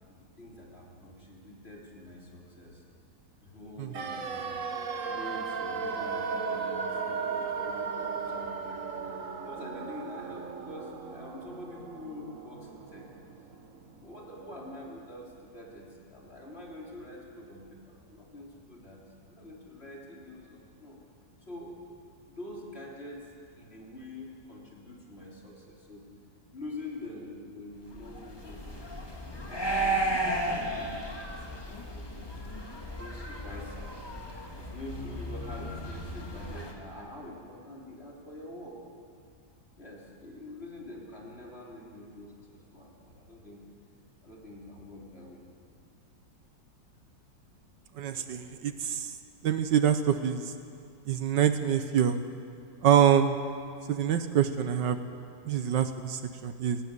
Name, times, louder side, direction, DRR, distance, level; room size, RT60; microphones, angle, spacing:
voice 1, 0.1-2.8 3.4-4.6 5.1-13.1 13.9-19.0 19.3-21.0 21.5-21.8 22.3-23.3 23.6-26.0 26.5-31.0 31.7-33.9 34.6-38.8 39.8-43.6 44.2-45.4, left 1 dB, 30° left, -3 dB, 3.7 m, -46 dB
sound 1, 3.9-13.9 14.1-14.2, right 5 dB, 50° right, 1.3 m, -36 dB
sound 2, 27.9-36.7, right 1 dB, 15° left, 1.8 m, -34 dB
voice 2, 48.0-49.1 49.4-50.5 51.1-52.2 52.8-53.4 53.9-55.0 55.5-56.8, right 9 dB, 70° right, 9 dB, 1.5 m, -25 dB
17.5 x 17.5 x 9.6 m, 2.3 s
omnidirectional pair, 2.0 m